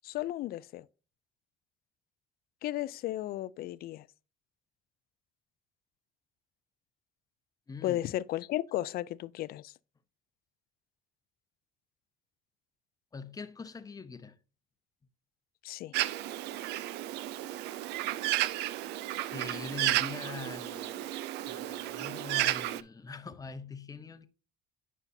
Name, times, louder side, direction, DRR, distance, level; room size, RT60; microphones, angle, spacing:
voice 1, 0.0-0.8 2.6-4.1 7.8-9.7 15.6-15.9, left 14 dB, 65° left, 0.4 m, -34 dB
voice 2, 7.7-8.1 13.1-14.4 19.3-21.1 21.4-24.3, left 5 dB, 20° left, 0.7 m, -43 dB
Bird, 15.9-22.8, right 15 dB, 85° right, 0.4 m, -33 dB
9.2 x 5.4 x 2.7 m
cardioid pair, 110°, 17 cm